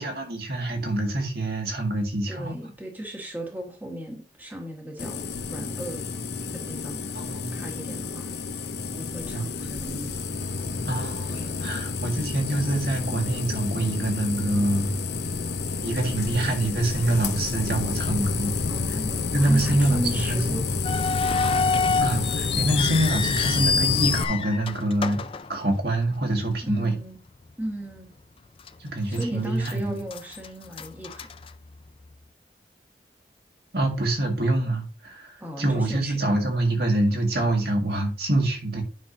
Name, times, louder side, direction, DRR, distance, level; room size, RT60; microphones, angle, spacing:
voice 1, 0.0-2.5 7.1-7.5 9.3-9.4 10.9-14.9 15.8-18.5 19.3-20.6 22.0-25.2 25.5-26.9 28.8-30.0 33.7-38.8, right 1 dB, 60° right, 2.0 m, -25 dB
voice 2, 2.3-5.2 5.5-6.1 6.6-7.0 7.5-8.3 8.9-10.2 11.3-11.6 18.7-20.6 21.1-21.5 21.9-22.0 26.6-27.2 27.6-28.1 29.1-31.3 35.4-36.2, right 1 dB, 10° right, 1.5 m, -36 dB
sound 1, 5.0-24.2, left 4 dB, 75° left, 0.7 m, -30 dB
sound 2, 20.8-26.2 26.5-26.6 27.3-27.5 28.0-28.1 28.7-29.3 29.6-32.1, left 5 dB, 30° left, 0.4 m, -27 dB
9.4 x 6.0 x 2.7 m
head